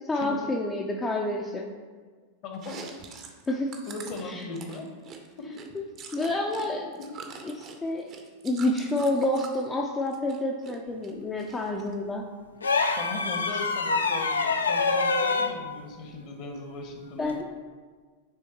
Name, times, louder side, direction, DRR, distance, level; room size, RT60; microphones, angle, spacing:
voice 1, 0.1-1.7 3.5-3.8 4.2-4.4 6.1-6.9 7.5-8.1 8.4-12.3 17.2-17.5, left 1 dB, 15° left, 0 dB, 0.5 m, -28 dB
voice 2, 2.4-2.8 3.8-4.9 5.4-5.5 7.0-7.1 12.9-17.3, left 3 dB, 40° left, 3 dB, 1.0 m, -38 dB
Chewing mastication, 2.5-6.7 6.9-9.6 10.0-10.8 11.0-11.9, right 6 dB, 35° right, 0.7 m, -44 dB
sound 1, 12.6-15.6 17.2-17.4, left 4 dB, 75° left, 0.4 m, -25 dB
9.1 x 3.4 x 3.0 m, 1.5 s
figure-of-eight pair, 90°, 0 cm